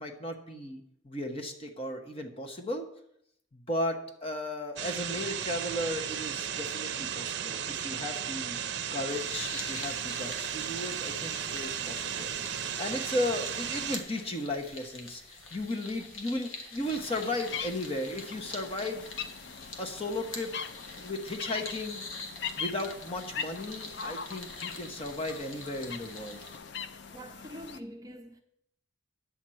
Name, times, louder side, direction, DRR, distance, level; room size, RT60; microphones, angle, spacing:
voice 1, 0.0-2.9 3.5-8.6 8.9-12.3 12.8-19.1 19.8-20.5 21.0-22.0 22.6-26.5, left 1 dB, 30° left, 1.0 m, -35 dB
sound 1, 4.8-14.0, right 9 dB, 55° right, 0.6 m, -35 dB
sound 2, 9.1-26.6, left 3 dB, 85° left, 1.6 m, -46 dB
sound 3, 16.8-27.8, left 6 dB, 60° left, 0.5 m, -41 dB
voice 2, 27.1-28.4, equal, 15° right, 0.7 m, -44 dB
9.8 x 4.4 x 7.7 m
head